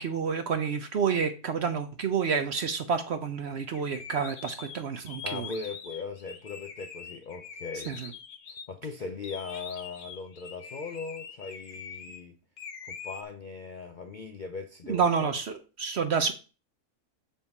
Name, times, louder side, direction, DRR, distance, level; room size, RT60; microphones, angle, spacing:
voice 1, 0.0-5.5 7.9-8.1 14.9-16.3, right 6 dB, 55° right, 8 dB, 0.8 m, -29 dB
sound 1, 3.7-8.7 9.2-12.2 12.6-13.2, left 6 dB, 80° left, 1.5 m, -43 dB
voice 2, 5.2-8.0 8.7-12.4 12.9-15.3, left 4 dB, 60° left, 5 dB, 0.5 m, -39 dB
7.2 x 3.7 x 5.3 m, 0.34 s
omnidirectional pair, 1.6 m